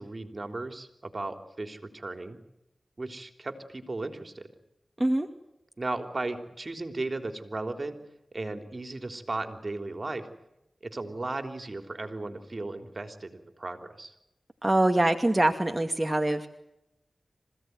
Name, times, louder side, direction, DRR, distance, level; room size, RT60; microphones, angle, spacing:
voice 1, 0.0-2.4 3.0-4.5 5.8-8.0 8.3-10.3 10.8-14.1, right 2 dB, 45° right, 8 dB, 3.7 m, -36 dB
voice 2, 14.6-16.5, right 1 dB, 20° right, 4 dB, 2.4 m, -24 dB
27.0 x 16.5 x 9.6 m, 0.86 s
cardioid pair, 45°, 0 cm